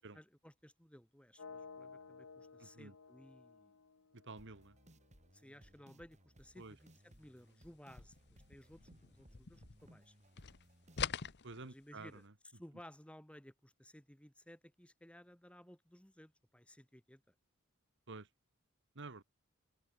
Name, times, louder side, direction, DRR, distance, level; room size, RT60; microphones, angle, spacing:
voice 1, 0.0-3.7 5.3-10.1 11.6-12.3 12.5-17.3, equal, 5° left, 2.1 m, -58 dB
sound 1, 1.4-5.3, left 4 dB, 80° left, 1.0 m, -55 dB
voice 2, 2.6-2.9 4.1-4.7 6.6-6.7 11.4-12.1 18.1-18.3 18.9-19.2, right 3 dB, 60° right, 1.7 m, -50 dB
sound 2, 4.4-11.4, right 1 dB, 35° right, 5.5 m, -64 dB
sound 3, 7.8-10.1 10.3-12.2, left 8 dB, 55° left, 0.9 m, -44 dB
head